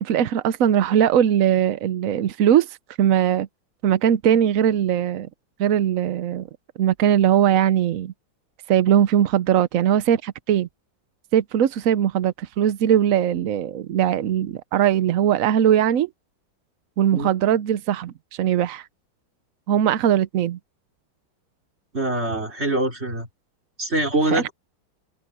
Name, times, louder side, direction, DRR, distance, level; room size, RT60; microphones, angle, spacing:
voice 1, 0.0-3.5 3.8-5.3 5.6-6.5 6.8-8.1 8.7-10.7 11.3-16.1 17.0-18.9 19.7-20.6 24.3-24.5, right 10 dB, 65° right, 0.8 m, -20 dB
voice 2, 21.9-23.3 23.8-24.5, right 2 dB, 30° right, 5.3 m, -24 dB
omnidirectional pair, 2.2 m